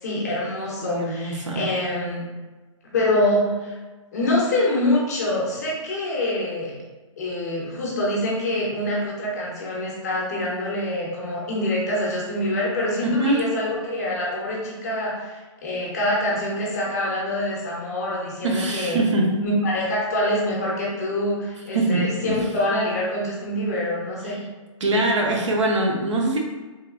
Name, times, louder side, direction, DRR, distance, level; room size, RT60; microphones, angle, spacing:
voice 1, 0.0-2.3 2.9-3.8 4.1-6.7 7.2-19.0 19.4-24.4, left 1 dB, 30° left, -4 dB, 0.6 m, -25 dB
voice 2, 0.8-1.7 13.0-13.4 18.4-19.5 21.7-22.4 24.8-26.4, right 2 dB, 65° right, 0 dB, 0.6 m, -23 dB
3.0 x 2.3 x 2.3 m, 1.2 s
hypercardioid pair, 175°, 16 cm